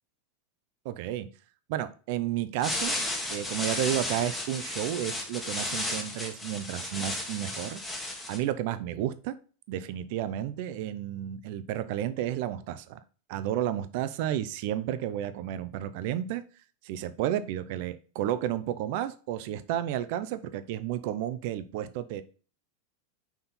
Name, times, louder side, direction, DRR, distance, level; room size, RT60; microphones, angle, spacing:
voice 1, 0.8-1.3 1.7-3.0 3.3-7.8 8.1-9.3 9.7-13.0 13.3-16.4 16.8-22.2, right 11 dB, 50° right, 13 dB, 0.5 m, -32 dB
sound 1, 2.6-8.4, left 2 dB, 5° left, 1.3 m, -34 dB
5.8 x 4.3 x 5.4 m, 0.38 s
supercardioid pair, 165°, 0 cm